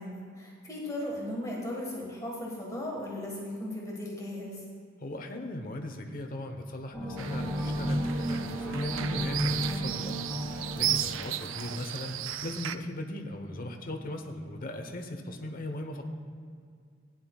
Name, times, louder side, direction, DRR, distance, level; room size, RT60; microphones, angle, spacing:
voice 1, 0.0-4.6, left 1 dB, 15° left, -3 dB, 1.7 m, -37 dB
voice 2, 5.0-16.0, left 1 dB, 45° left, 4 dB, 1.0 m, -39 dB
sound 1, 6.9-12.3, equal, ahead, 1.7 m, -33 dB
sound 2, 7.2-12.8, right 11 dB, 85° right, 0.4 m, -35 dB
16.5 x 10.5 x 2.4 m, 2.2 s
head